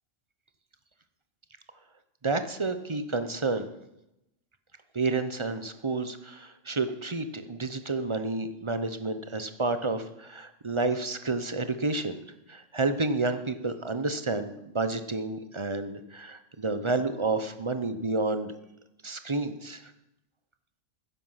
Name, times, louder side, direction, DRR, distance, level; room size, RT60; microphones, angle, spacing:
voice 1, 2.2-3.7 4.9-12.2 12.5-18.6 19.0-19.9, right 3 dB, 30° right, 10 dB, 0.7 m, -30 dB
13.5 x 10.0 x 5.7 m, 0.87 s
omnidirectional pair, 1.3 m